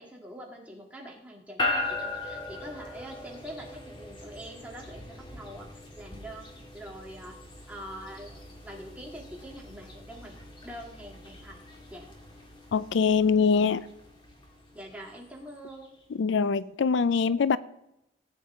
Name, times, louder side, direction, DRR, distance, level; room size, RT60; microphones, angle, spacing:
voice 1, 0.0-5.7 6.0-6.5 6.7-7.4 7.7-10.4 10.6-11.6 11.9-12.1 14.7-15.9, equal, 10° right, 2.0 m, -44 dB
sound 1, 1.6-15.9, left 2 dB, 25° left, 1.7 m, -39 dB
voice 2, 12.7-13.8 16.2-17.6, left 5 dB, 80° left, 0.4 m, -23 dB
17.5 x 8.5 x 3.7 m
head